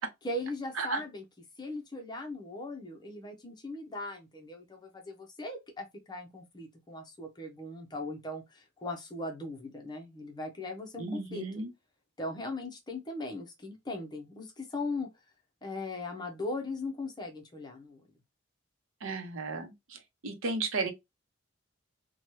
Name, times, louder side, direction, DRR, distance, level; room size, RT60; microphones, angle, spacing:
voice 1, 0.2-1.2 1.6-11.4 12.2-15.1 15.6-18.0, left 2 dB, 20° left, 0.7 m, -39 dB
voice 2, 11.0-11.7 19.0-20.9, right 3 dB, 80° right, 0.7 m, -34 dB
2.8 x 2.2 x 3.0 m
head